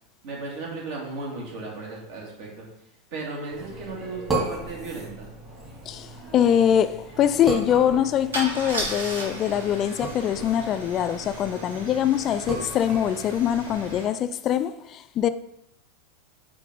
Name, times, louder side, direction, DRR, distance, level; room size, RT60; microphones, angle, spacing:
voice 1, 0.2-2.7 3.1-5.3, right 3 dB, 50° right, 2.4 m, -35 dB
sound 1, 3.5-14.0, right 2 dB, 20° right, 2.7 m, -36 dB
Car / Engine starting / Idling, 5.7-5.8 6.1-6.3 8.3-14.0, right 1 dB, 70° right, 2.1 m, -36 dB
voice 2, 5.9-15.3, left 9 dB, 35° left, 0.4 m, -23 dB
8.2 x 4.5 x 3.8 m
figure-of-eight pair, 85°, 0 cm